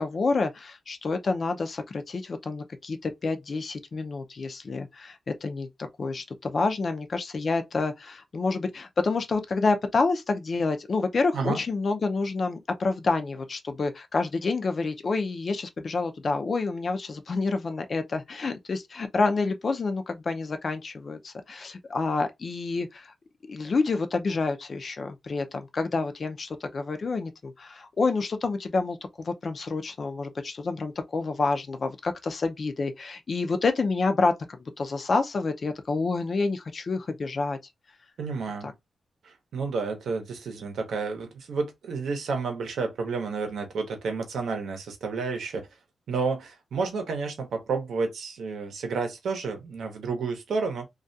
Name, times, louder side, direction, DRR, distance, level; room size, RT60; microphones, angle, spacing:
voice 1, 0.0-23.1 23.5-37.6, left 3 dB, 40° left, 0.4 m, -28 dB
voice 2, 38.2-38.7 39.2-45.7 46.1-50.9, right 4 dB, 80° right, 0.7 m, -30 dB
2.3 x 2.2 x 2.5 m
wide cardioid pair, 140°, 0 cm